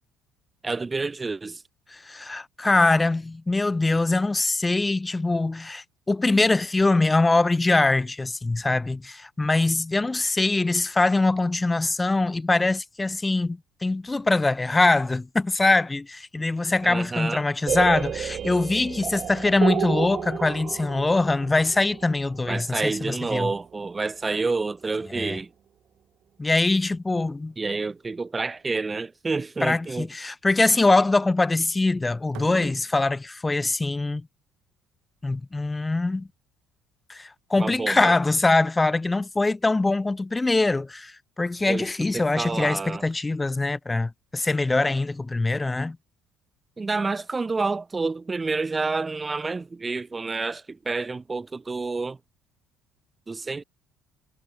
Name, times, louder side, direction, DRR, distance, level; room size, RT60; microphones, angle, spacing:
voice 1, 0.6-1.6 16.8-17.5 22.5-25.5 27.6-30.1 37.6-38.2 41.7-41.9 42.1-43.0 46.8-52.2 53.3-53.6, right 3 dB, 25° right, 4.4 m, -29 dB
voice 2, 1.9-23.5 25.1-25.4 26.4-27.5 29.6-34.2 35.2-36.3 37.1-46.0, left 2 dB, 20° left, 0.7 m, -23 dB
sound 1, 17.7-23.4, right 9 dB, 50° right, 0.7 m, -31 dB
sound 2, 26.8-27.2 27.5-28.0 28.6-29.0 29.4-29.6 32.2-33.1, right 17 dB, 65° right, 3.5 m, -45 dB
hypercardioid pair, 60°, 0 cm